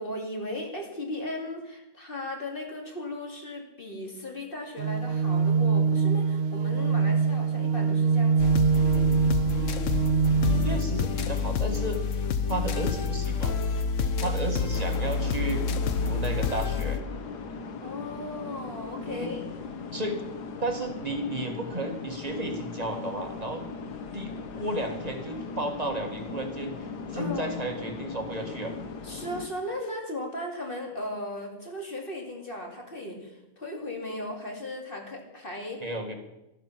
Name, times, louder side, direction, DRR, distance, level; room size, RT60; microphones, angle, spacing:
voice 1, 0.0-8.8 17.8-19.4 27.1-27.5 29.0-35.8, left 1 dB, 35° left, 1 dB, 2.7 m, -36 dB
sound 1, 4.8-10.8, right 5 dB, 60° right, 0.6 m, -24 dB
sound 2, 8.4-17.0, left 5 dB, 55° left, 1.1 m, -28 dB
voice 2, 10.6-12.0 12.5-13.6 14.2-15.6 16.0-17.0 19.1-19.3 19.9-20.2 20.6-23.6 24.1-24.3 24.6-26.7 27.1-28.7 35.8-36.1, right 1 dB, 25° right, 4 dB, 1.7 m, -33 dB
sound 3, 14.7-29.5, left 4 dB, 90° left, 1.8 m, -39 dB
12.5 x 11.5 x 7.2 m, 0.94 s
omnidirectional pair, 1.7 m